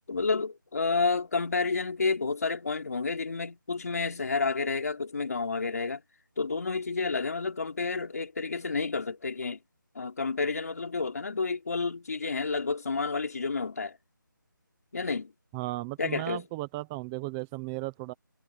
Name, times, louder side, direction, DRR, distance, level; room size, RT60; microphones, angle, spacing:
voice 1, 0.1-6.0 6.4-9.6 9.9-14.0 14.9-15.3 16.0-16.4, left 4 dB, 50° left, 3.2 m, -30 dB
voice 2, 15.5-18.1, right 21 dB, 5° right, 0.8 m, -35 dB
figure-of-eight pair, 170°, 11 cm